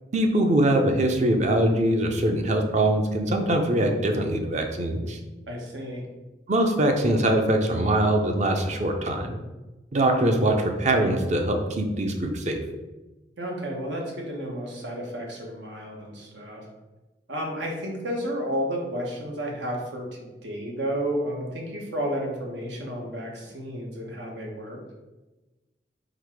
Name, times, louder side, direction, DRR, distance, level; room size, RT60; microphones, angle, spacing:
voice 1, 0.1-5.2 6.5-9.3 9.9-12.6, right 1 dB, 40° right, 4 dB, 0.6 m, -23 dB
voice 2, 5.5-6.0 13.4-16.6 17.3-24.8, equal, 85° right, 0 dB, 1.1 m, -32 dB
4.0 x 2.7 x 4.7 m, 1.1 s
head